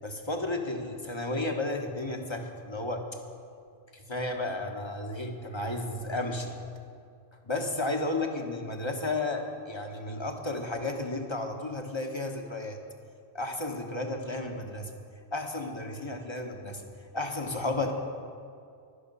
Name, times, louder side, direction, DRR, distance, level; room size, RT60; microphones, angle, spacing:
voice 1, 0.0-3.2 3.9-6.6 7.4-12.8 13.3-14.9 15.3-16.8 17.1-17.9, left 2 dB, 25° left, 3 dB, 1.3 m, -33 dB
16.5 x 11.5 x 5.5 m, 2.3 s
omnidirectional pair, 1.1 m